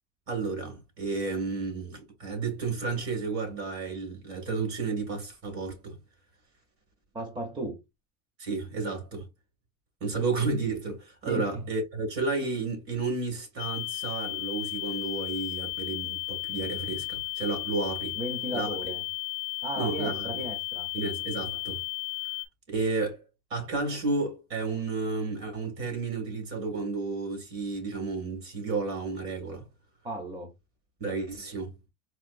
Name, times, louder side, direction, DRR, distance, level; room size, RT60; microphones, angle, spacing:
voice 1, 0.3-6.0 8.4-9.3 10.0-18.2 18.5-18.8 19.8-20.3 20.9-21.8 22.7-23.2 23.5-29.7 31.0-31.8, right 3 dB, 45° right, 2.0 m, -32 dB
voice 2, 7.1-7.8 11.3-11.6 18.2-19.0 19.6-20.9 30.0-30.5, right 1 dB, 15° right, 0.7 m, -35 dB
sound 1, 13.6-22.5, left 30 dB, 65° left, 0.5 m, -34 dB
4.3 x 2.5 x 2.5 m
cardioid pair, 150°, 30 cm